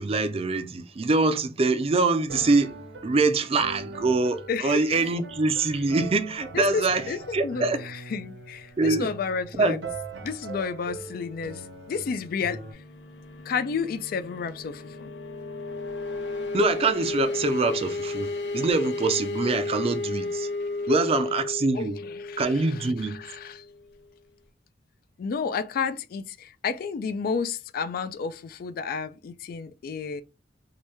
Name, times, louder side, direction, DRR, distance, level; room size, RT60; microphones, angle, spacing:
voice 1, 0.0-7.8 8.8-9.1 9.6-9.8 16.5-20.5 20.9-22.0 22.4-23.2, right 3 dB, 35° right, 0.4 m, -24 dB
sound 1, 2.3-12.7, right 3 dB, 75° right, 0.8 m, -41 dB
voice 2, 4.5-4.8 6.5-9.8 10.2-12.6 13.5-15.1 21.7-22.5 22.8-23.6 25.2-30.2, left 5 dB, 55° left, 0.3 m, -31 dB
sound 2, 11.5-24.1, left 3 dB, 80° left, 0.7 m, -34 dB
2.9 x 2.7 x 3.3 m
head